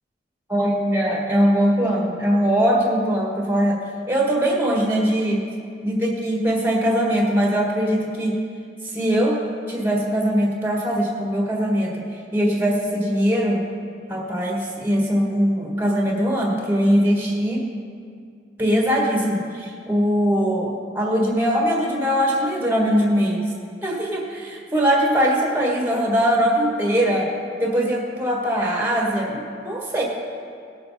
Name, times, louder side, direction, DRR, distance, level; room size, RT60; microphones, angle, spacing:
voice 1, 0.5-5.5 5.8-8.4 8.8-12.1 12.3-13.6 14.1-17.7 18.6-23.5 23.8-27.3 27.6-30.0, equal, 10° right, -2 dB, 1.6 m, -21 dB
18.5 x 6.9 x 4.2 m, 2.2 s
head